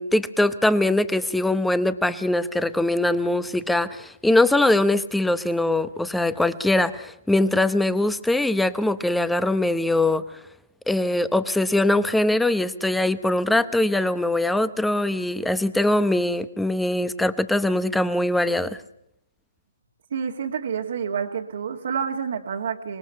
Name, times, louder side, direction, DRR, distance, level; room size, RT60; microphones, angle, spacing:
voice 1, 0.0-10.2 10.9-18.8, left 1 dB, 5° left, 14 dB, 0.8 m, -22 dB
voice 2, 20.1-23.0, right 7 dB, 60° right, 0 dB, 1.9 m, -28 dB
25.0 x 20.0 x 5.7 m, 0.75 s
hypercardioid pair, 150°, 0 cm